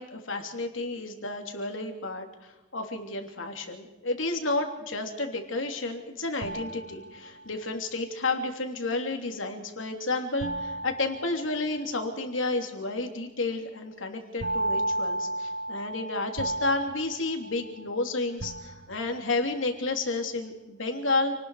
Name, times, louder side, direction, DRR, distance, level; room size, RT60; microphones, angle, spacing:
voice 1, 0.0-21.3, left 2 dB, 90° left, 4 dB, 3.1 m, -31 dB
sound 1, 6.4-7.6 10.4-12.0 14.4-18.0 18.4-19.3, right 1 dB, 65° right, 1.0 m, -34 dB
28.5 x 19.5 x 4.9 m, 1.1 s
head